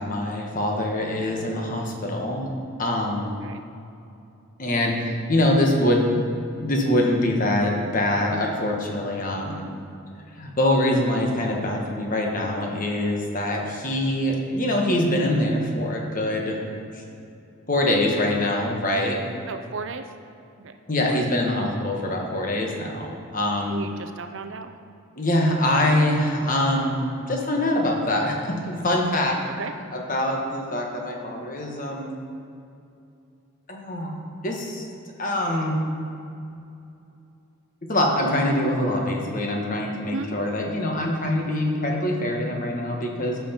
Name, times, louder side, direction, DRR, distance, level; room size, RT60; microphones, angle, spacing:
voice 1, 0.0-2.5 2.8-3.3 4.6-6.1 6.5-9.6 10.3-16.6 16.9-17.0 17.7-19.2 20.9-23.8 25.2-28.4 28.6-29.4 29.9-32.2 33.7-34.1 34.4-34.9 35.2-35.8 37.9-43.4, left 1 dB, 40° left, 0 dB, 1.4 m, -24 dB
voice 2, 19.5-20.1 20.6-20.8 21.1-21.3 23.7-24.7 26.4-26.5 29.5-29.7 40.1-40.3, right 4 dB, 60° right, 8 dB, 0.6 m, -35 dB
14.5 x 6.0 x 4.4 m, 2.7 s
head